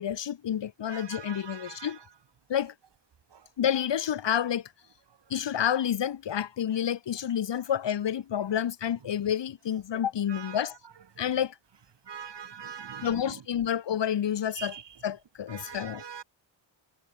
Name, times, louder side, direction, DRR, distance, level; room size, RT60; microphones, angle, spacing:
voice 1, 0.0-2.0 2.5-2.7 3.6-4.7 5.3-10.8 11.2-11.5 13.0-14.8 15.0-16.0, left 9 dB, 65° left, 1.0 m, -29 dB
voice 2, 0.9-1.9 10.3-10.6 12.1-13.1 14.6-14.8 15.5-16.2, right 7 dB, 60° right, 1.7 m, -42 dB
wide cardioid pair, 105°, 46 cm